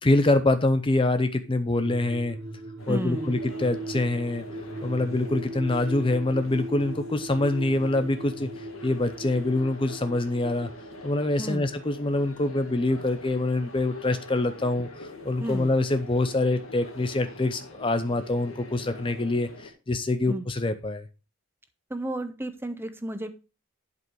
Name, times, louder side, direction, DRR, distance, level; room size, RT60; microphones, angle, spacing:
voice 1, 0.0-2.4 2.9-4.5 4.8-8.5 8.8-10.7 11.0-21.1, left 2 dB, 25° left, 10 dB, 0.5 m, -25 dB
sound 1, 1.8-12.6 12.9-13.0, right 2 dB, 55° right, 1.3 m, -39 dB
sound 2, 2.8-19.7, left 2 dB, 70° left, 2.0 m, -45 dB
voice 2, 2.9-3.4 11.4-11.7 15.4-15.7 20.3-20.4 21.9-23.3, right 1 dB, 10° right, 10 dB, 0.7 m, -32 dB
11.0 x 5.1 x 4.7 m, 0.31 s
head